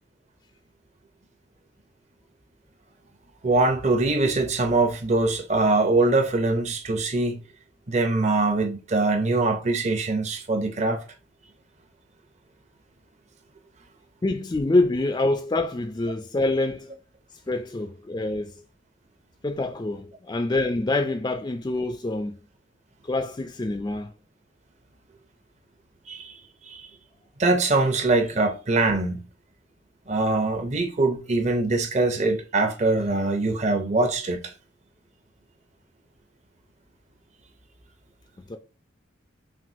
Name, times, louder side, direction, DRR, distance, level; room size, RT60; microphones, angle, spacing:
voice 1, 3.4-7.4 7.9-11.0 26.1-26.3 26.7-26.8 27.4-29.2 30.1-34.4, right 2 dB, 35° right, 0.6 m, -23 dB
voice 2, 14.2-17.0 17.5-18.5 19.4-22.4 23.1-24.1 38.5-38.6, left 2 dB, 20° left, 0.3 m, -26 dB
5.9 x 2.4 x 2.6 m
head